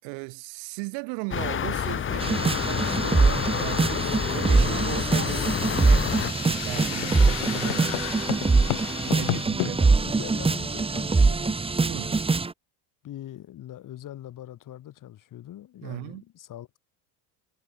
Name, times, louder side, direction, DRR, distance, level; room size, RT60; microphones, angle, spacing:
voice 1, 0.0-8.1 9.1-9.9 11.9-12.2 15.8-16.2, right 35 dB, 75° right, 4.8 m, -37 dB
sound 1, 1.3-6.3, left 8 dB, 30° left, 1.5 m, -28 dB
sound 2, 2.2-12.5, right 4 dB, 15° right, 1.7 m, -23 dB
sound 3, 4.9-9.7, left 34 dB, 80° left, 1.0 m, -33 dB
voice 2, 9.1-12.2 13.0-16.8, left 12 dB, 45° left, 4.3 m, -42 dB
supercardioid pair, 115°, 43 cm